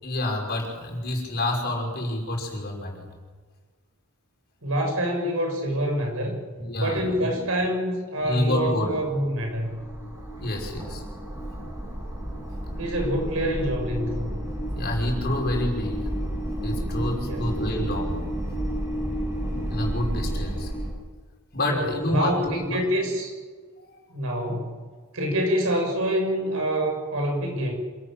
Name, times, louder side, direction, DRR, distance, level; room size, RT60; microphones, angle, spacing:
voice 1, 0.0-3.1 6.6-7.3 8.2-8.9 10.4-11.0 14.7-16.1 16.6-18.2 19.7-20.7 21.5-22.8 23.8-23.9, left 1 dB, 45° left, 1 dB, 5.8 m, -28 dB
voice 2, 4.6-6.4 6.8-9.8 12.8-14.3 17.2-17.4 21.6-23.3 24.1-24.7 25.1-27.7, equal, 70° right, 2 dB, 6.8 m, -26 dB
sound 1, 9.1-20.9, right 1 dB, 15° right, 6.6 m, -31 dB
27.0 x 14.0 x 8.9 m, 1.5 s
head